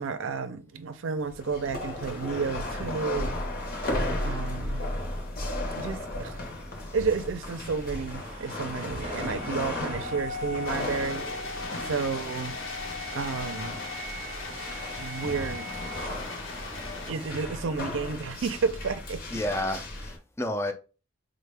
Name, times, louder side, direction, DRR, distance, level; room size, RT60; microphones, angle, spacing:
voice 1, 0.0-3.4 4.2-4.8 5.8-6.4 6.9-11.2 11.8-12.6 13.1-13.8 15.0-15.7 17.1-19.4, right 5 dB, 75° right, 0.5 m, -31 dB
sound 1, 1.2-20.2, left 1 dB, 45° left, 0.7 m, -35 dB
sound 2, 7.8-17.6, left 1 dB, 35° right, 0.8 m, -40 dB
sound 3, 10.6-17.1, left 4 dB, 75° left, 0.9 m, -40 dB
voice 2, 19.3-20.7, left 1 dB, 15° left, 0.3 m, -30 dB
4.3 x 2.1 x 3.3 m
head